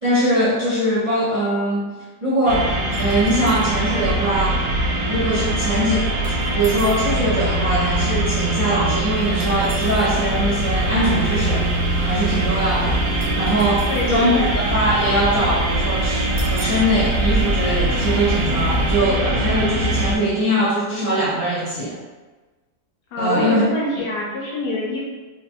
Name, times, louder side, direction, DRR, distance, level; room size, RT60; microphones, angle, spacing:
voice 1, 0.0-2.7 3.0-4.6 5.1-6.1 6.5-11.7 12.0-13.0 13.3-21.9 23.2-23.7 24.0-24.1, right 1 dB, 30° right, -10 dB, 0.6 m, -21 dB
sound 1, 2.5-20.2, right 1 dB, 90° right, 1.4 m, -22 dB
sound 2, 2.9-3.7 6.2-7.1 9.4-10.1 13.2-14.2 16.4-16.9, right 2 dB, 60° right, 1.1 m, -40 dB
sound 3, 9.1-19.0, right 3 dB, 30° left, 1.2 m, -30 dB
voice 2, 13.9-14.7 23.1-25.1, left 2 dB, 75° left, -5 dB, 1.2 m, -25 dB
4.8 x 2.3 x 2.9 m, 1.3 s
omnidirectional pair, 1.9 m